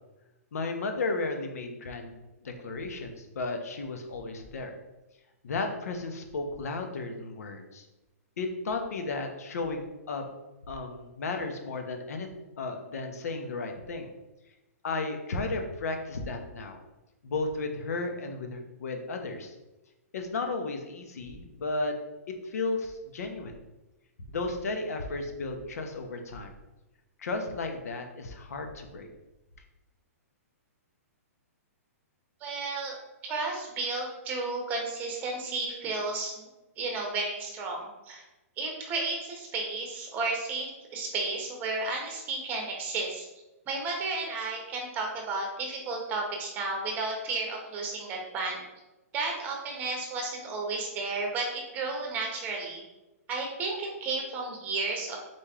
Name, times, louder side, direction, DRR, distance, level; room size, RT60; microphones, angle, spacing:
voice 1, 0.5-4.7 5.4-7.9 8.4-10.2 10.7-12.3 12.6-14.1 14.8-16.8 17.2-19.5 20.1-22.0 22.4-23.6 24.3-26.5 27.2-29.1, left 3 dB, 75° left, 4 dB, 0.9 m, -34 dB
voice 2, 32.4-32.9 33.2-36.5 36.8-38.2 38.6-43.3 43.7-48.6 49.1-52.8 53.3-55.2, right 3 dB, 20° right, 0 dB, 1.0 m, -33 dB
4.3 x 3.3 x 3.6 m, 1.0 s
hypercardioid pair, 155°, 8 cm